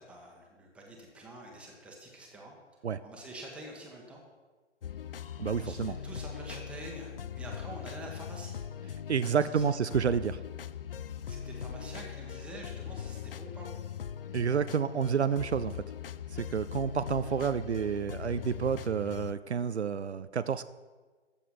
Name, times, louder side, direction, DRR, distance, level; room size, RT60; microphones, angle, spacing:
voice 1, 0.0-2.5 3.0-4.2 5.6-8.6 9.5-9.6 11.2-13.8, right 1 dB, 5° right, -1 dB, 1.4 m, -47 dB
sound 1, 4.8-19.3, left 8 dB, 55° left, 0.4 m, -41 dB
voice 2, 5.4-6.0 9.1-10.4 14.3-15.8 16.3-20.6, right 7 dB, 70° right, 13 dB, 0.6 m, -29 dB
13.5 x 7.3 x 5.9 m, 1.4 s
figure-of-eight pair, 135°, 35 cm